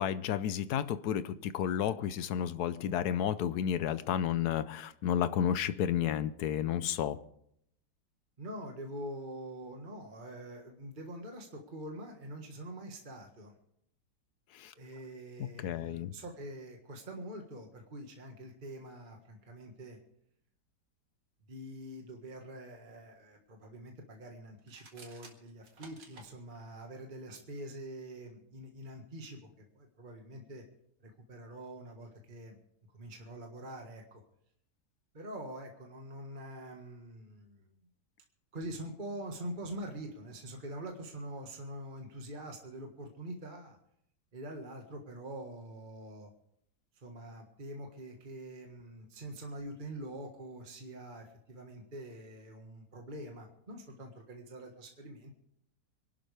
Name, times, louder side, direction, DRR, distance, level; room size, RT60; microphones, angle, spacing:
voice 1, 0.0-7.2 14.5-14.7 15.4-16.1, left 9 dB, 70° left, 14 dB, 1.2 m, -32 dB
voice 2, 8.4-13.5 14.7-20.0 21.5-30.6 31.0-32.6 32.9-34.2 35.1-37.9 38.5-43.8 44.3-46.3 46.9-55.4, right 1 dB, 30° right, 2 dB, 1.7 m, -45 dB
sound 1, 24.6-26.3, right 3 dB, 90° right, 2.6 m, -54 dB
25.5 x 12.0 x 3.4 m, 0.72 s
omnidirectional pair, 1.9 m